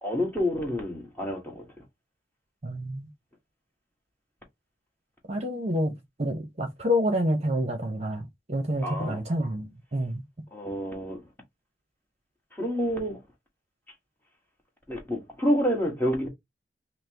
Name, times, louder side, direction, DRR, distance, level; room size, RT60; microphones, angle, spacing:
voice 1, 0.0-1.7 8.8-9.2 10.5-11.2 12.5-13.2 14.9-16.3, equal, 10° left, 1.4 m, -28 dB
voice 2, 2.6-3.1 5.3-10.2, equal, 35° right, 0.8 m, -28 dB
5.6 x 2.1 x 2.9 m
head